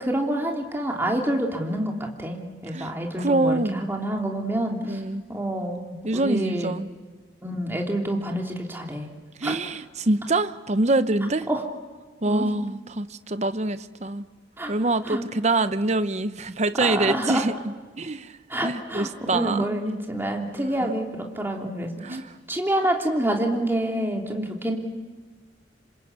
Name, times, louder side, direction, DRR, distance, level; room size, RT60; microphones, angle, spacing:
voice 1, 0.0-1.9 2.2-5.0 5.3-6.7 7.4-9.1 9.4-9.5 11.5-11.6 12.2-12.5 14.6-14.7 15.0-15.2 16.8-17.4 18.5-22.2 22.5-24.8, right 1 dB, 15° right, 0 dB, 3.1 m, -27 dB
voice 2, 3.2-3.9 4.9-5.2 6.0-6.9 9.4-11.5 12.2-14.3 14.7-19.7 20.8-20.9 22.0-22.3, right 2 dB, 40° right, 12 dB, 0.9 m, -25 dB
27.0 x 26.0 x 8.2 m, 1.4 s
head